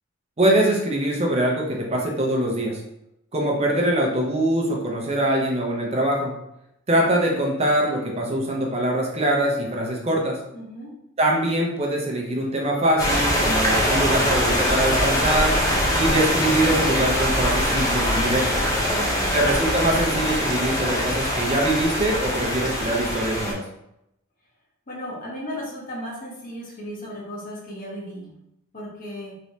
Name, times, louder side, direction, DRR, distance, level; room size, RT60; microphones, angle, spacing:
voice 1, 0.4-2.8 3.3-6.3 6.9-10.4 11.2-15.5 15.9-18.6 19.3-23.6, right 1 dB, 30° right, -1 dB, 0.6 m, -23 dB
voice 2, 10.5-10.9 18.8-19.4 24.9-28.3 28.7-29.4, equal, 45° left, -4 dB, 1.1 m, -35 dB
sound 1, 13.0-23.5, equal, 15° left, 0.7 m, -23 dB
3.1 x 3.0 x 2.7 m, 0.82 s
head